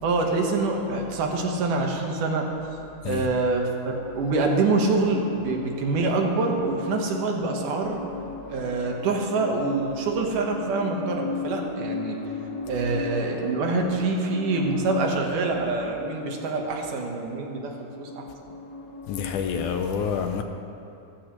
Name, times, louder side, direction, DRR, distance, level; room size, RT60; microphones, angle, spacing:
voice 1, 0.0-2.4 3.0-8.0 8.5-12.2 12.7-18.3, right 3 dB, 70° right, 2.8 m, -25 dB
sound 1, 2.8-3.3 3.7-19.7, left 4 dB, 55° left, 1.0 m, -37 dB
voice 2, 19.1-20.4, left 7 dB, 75° left, 2.0 m, -28 dB
19.5 x 15.0 x 3.1 m
omnidirectional pair, 3.9 m